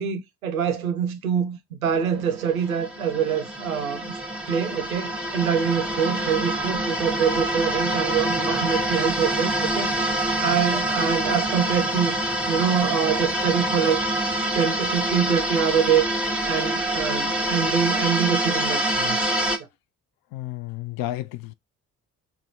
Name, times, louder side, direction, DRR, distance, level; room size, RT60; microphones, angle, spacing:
voice 1, 0.0-4.2 4.5-12.2 12.5-16.1 16.5-19.3, right 7 dB, 90° right, 0.6 m, -25 dB
sound 1, 1.9-19.6, right 1 dB, 5° right, 0.8 m, -26 dB
voice 2, 20.3-21.5, left 15 dB, 60° left, 0.5 m, -32 dB
3.5 x 2.3 x 4.2 m
figure-of-eight pair, 40°, 41 cm